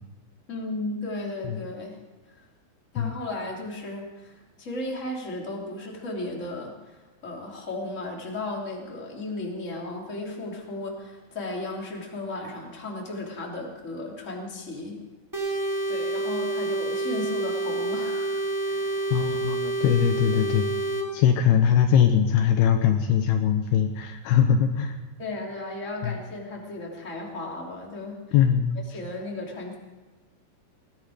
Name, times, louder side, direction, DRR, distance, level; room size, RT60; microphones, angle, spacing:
voice 1, 0.5-2.0 2.3-2.4 2.9-15.0 15.9-18.4 18.6-19.2 25.2-28.2 28.9-29.7, left 2 dB, 20° left, -1 dB, 2.9 m, -35 dB
sound 1, 15.3-21.1, right 2 dB, 5° right, 1.6 m, -28 dB
voice 2, 19.1-20.7 21.1-24.9 26.0-26.1 28.3-28.7, left 8 dB, 75° left, 6 dB, 2.7 m, -21 dB
20.5 x 14.0 x 5.0 m, 1.2 s
omnidirectional pair, 4.8 m